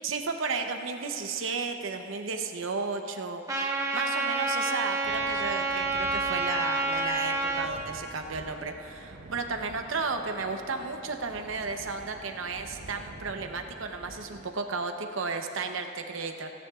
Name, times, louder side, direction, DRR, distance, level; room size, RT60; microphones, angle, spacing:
voice 1, 0.0-3.4 3.9-16.5, right 4 dB, 90° right, 5 dB, 0.8 m, -33 dB
Trumpet, 3.5-7.7, right 3 dB, 15° right, 1.3 m, -28 dB
sound 1, 5.0-14.5, right 2 dB, 60° right, 0.8 m, -48 dB
16.5 x 16.5 x 2.4 m, 2.8 s
head